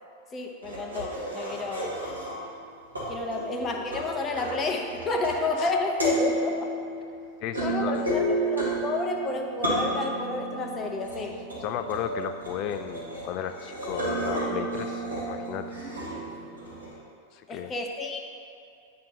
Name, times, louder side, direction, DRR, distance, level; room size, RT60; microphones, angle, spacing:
voice 1, 0.3-2.0 3.1-6.7 7.0-7.2 7.6-11.4 17.5-18.2, left 3 dB, 25° left, 3 dB, 0.8 m, -30 dB
sound 1, 0.6-2.6 2.9-5.7 5.9-16.9, right 1 dB, 80° right, 1.7 m, -32 dB
voice 2, 7.4-8.1 11.6-15.7 17.3-17.7, left 9 dB, 40° left, 9 dB, 0.4 m, -34 dB
8.8 x 6.2 x 2.8 m, 2.5 s
figure-of-eight pair, 90°, 0 cm